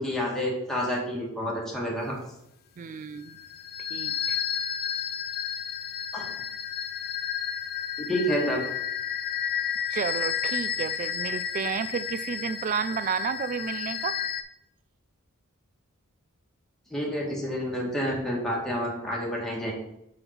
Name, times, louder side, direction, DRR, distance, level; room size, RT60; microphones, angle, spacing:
voice 1, 0.0-2.1 6.1-6.3 8.1-8.6 16.9-19.7, equal, ahead, -4 dB, 1.8 m, -29 dB
voice 2, 2.8-3.4 3.9-4.5 9.9-14.2, right 6 dB, 35° right, 15 dB, 0.3 m, -32 dB
lucid drone, 3.3-14.4, left 8 dB, 45° left, 0.5 m, -32 dB
5.5 x 5.3 x 4.5 m, 0.81 s
head